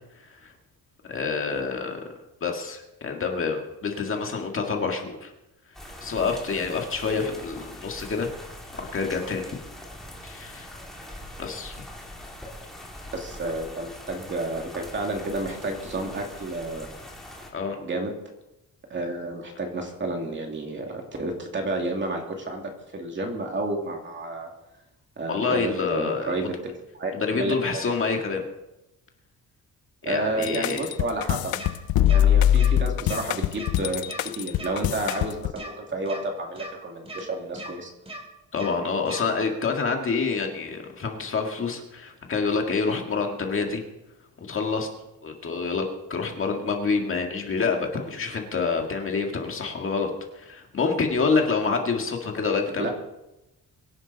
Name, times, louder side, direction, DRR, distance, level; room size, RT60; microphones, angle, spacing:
voice 1, 1.1-2.1 2.4-5.3 6.0-8.3 8.8-9.6 10.2-10.7 11.4-11.7 17.5-17.8 25.3-26.5 27.1-28.4 30.0-30.8 32.2-32.3 38.5-43.8 44.4-44.9 45.2-52.9, left 4 dB, 35° left, 2 dB, 1.9 m, -27 dB
sound 1, 5.7-17.5, left 1 dB, ahead, 2.5 m, -42 dB
voice 2, 13.1-16.9 17.8-18.1 18.9-24.5 25.2-27.9 30.0-31.5 32.0-34.0 34.4-37.9 52.8-52.9, right 2 dB, 30° right, 2 dB, 2.4 m, -31 dB
sound 2, 30.4-35.5, left 11 dB, 80° left, 0.6 m, -22 dB
sound 3, 31.6-31.7 32.1-32.2 32.6-32.7 33.1-33.2 33.5-33.7 34.1-34.2 34.6-34.7 35.1-35.2 35.6-35.7 36.1-36.2 36.6-36.7 37.1-37.2 37.6-37.7 38.1-38.2 38.6-38.7 39.1-39.2, right 1 dB, 15° right, 2.9 m, -38 dB
23.5 x 11.0 x 4.1 m, 0.92 s
wide cardioid pair, 180°, 35 cm